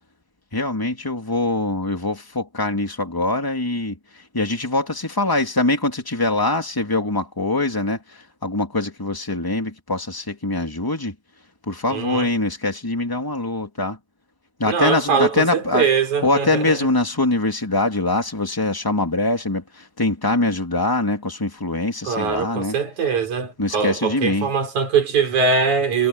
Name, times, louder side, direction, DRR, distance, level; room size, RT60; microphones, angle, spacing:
voice 1, 0.5-11.1 11.7-14.0 14.6-15.9 16.2-22.8 23.6-24.5, left 2 dB, 5° left, 2.4 m, -23 dB
voice 2, 11.9-12.3 14.6-16.8 22.1-26.1, right 5 dB, 55° right, 6.8 m, -22 dB
omnidirectional pair, 4.1 m